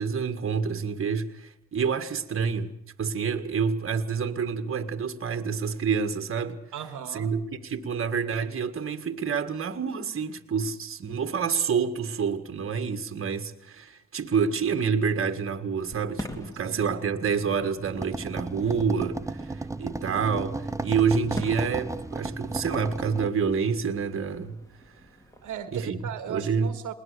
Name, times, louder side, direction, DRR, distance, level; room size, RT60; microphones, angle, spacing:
voice 1, 0.0-2.7 3.0-6.6 7.1-24.6 25.7-26.0 26.3-26.7, right 6 dB, 40° right, 1.8 m, -28 dB
voice 2, 6.7-7.3 16.6-17.0 25.4-26.9, right 9 dB, 60° right, 1.7 m, -37 dB
Fireworks, 15.8-25.7, equal, 10° left, 2.7 m, -44 dB
sound 1, 17.9-23.3, right 2 dB, 10° right, 0.8 m, -34 dB
20.5 x 19.5 x 6.8 m
supercardioid pair, 70°, 34 cm